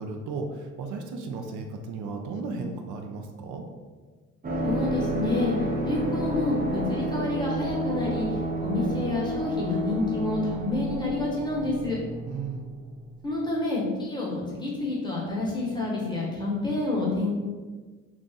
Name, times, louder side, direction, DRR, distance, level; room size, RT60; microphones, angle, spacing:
voice 1, 0.0-3.6 12.3-12.7, right 4 dB, 80° right, 4 dB, 0.5 m, -35 dB
sound 1, 4.4-13.0 13.2-13.3, right 1 dB, 30° right, 0.5 m, -30 dB
voice 2, 4.6-5.6 5.8-8.3 8.6-12.0 13.2-17.3, left 2 dB, 15° left, -5 dB, 1.0 m, -28 dB
2.4 x 2.4 x 3.8 m, 1.4 s
cardioid pair, 90°, 30 cm